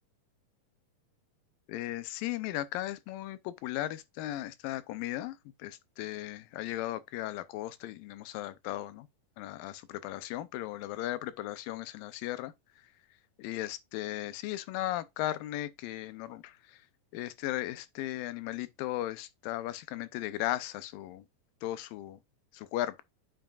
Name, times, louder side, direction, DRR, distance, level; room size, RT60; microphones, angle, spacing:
voice 1, 1.7-9.1 9.4-12.5 13.4-16.6 17.1-21.2 21.6-22.2 22.5-23.0, left 14 dB, 90° left, 2.4 m, -36 dB
8.8 x 5.8 x 2.4 m
omnidirectional pair, 3.9 m